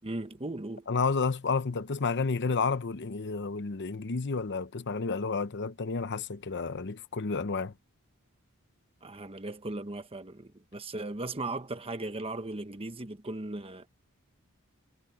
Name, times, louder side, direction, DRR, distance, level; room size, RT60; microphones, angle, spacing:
voice 1, 0.0-0.9 9.0-13.9, right 2 dB, 25° right, 1.2 m, -37 dB
voice 2, 0.9-7.7, left 4 dB, 55° left, 0.8 m, -31 dB
head